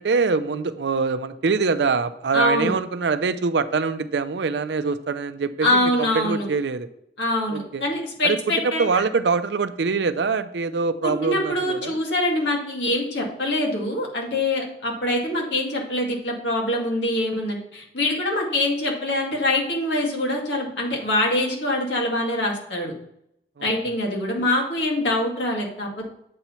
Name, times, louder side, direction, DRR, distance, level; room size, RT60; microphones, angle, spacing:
voice 1, 0.0-6.9 7.5-7.8 8.2-8.4 8.6-12.0 23.6-23.7, right 4 dB, 75° right, 12 dB, 0.5 m, -24 dB
voice 2, 2.3-2.7 5.6-6.5 7.2-9.0 11.0-22.9 23.6-26.1, left 1 dB, 85° left, -1 dB, 2.0 m, -24 dB
7.7 x 3.0 x 5.6 m, 0.77 s
head